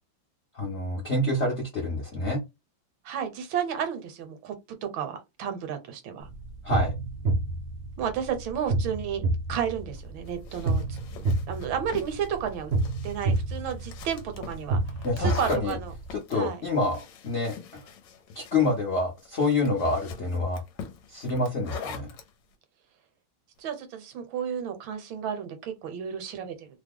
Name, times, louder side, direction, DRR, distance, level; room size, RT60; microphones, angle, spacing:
voice 1, 0.5-2.4 6.6-6.9 15.0-15.8 16.1-17.9 18.3-20.6 21.1-22.2, left 2 dB, 55° left, 0.7 m, -27 dB
voice 2, 3.0-4.6 4.8-6.3 8.0-9.2 9.5-11.0 11.5-12.7 13.0-14.8 15.2-15.9 16.3-16.6 23.6-26.7, right 8 dB, 75° right, 1.4 m, -32 dB
sound 1, 6.2-16.1, right 2 dB, 55° right, 0.7 m, -29 dB
sound 2, 9.9-22.3, left 7 dB, 70° left, 1.3 m, -44 dB
3.2 x 2.1 x 3.5 m
omnidirectional pair, 2.2 m